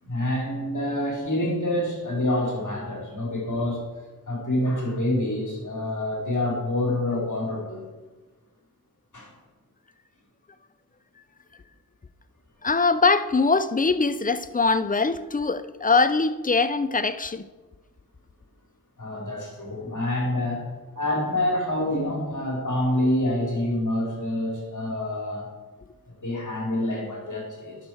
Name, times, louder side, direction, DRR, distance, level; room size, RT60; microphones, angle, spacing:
voice 1, 0.0-3.8 4.3-7.8 9.1-9.3 19.0-20.7 20.9-25.5 26.2-27.8, left 1 dB, 50° left, 3.4 m, -27 dB
voice 2, 12.6-17.4, left 4 dB, 25° left, 0.5 m, -22 dB
11.0 x 6.3 x 4.5 m
wide cardioid pair, 65°, 37 cm